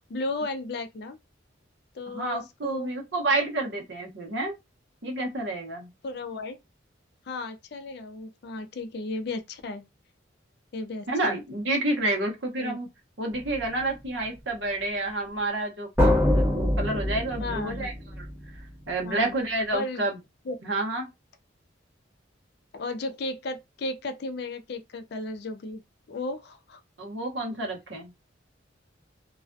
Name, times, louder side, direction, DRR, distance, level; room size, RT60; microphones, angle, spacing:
voice 1, 0.1-1.2 1.9-2.9 6.0-6.6 7.3-9.9 10.7-11.4 12.6-12.8 17.4-17.9 19.0-19.3 19.7-20.0 20.5-20.6 22.7-25.8 26.1-26.8, left 2 dB, 55° left, 0.4 m, -34 dB
voice 2, 2.1-4.5 5.0-5.9 11.1-12.9 13.2-18.3 18.5-20.2 20.6-21.1 27.0-28.1, right 2 dB, 65° right, 0.8 m, -29 dB
sound 1, 13.3-13.6 16.0-18.6, left 1 dB, 5° right, 1.0 m, -25 dB
2.4 x 2.2 x 2.5 m
head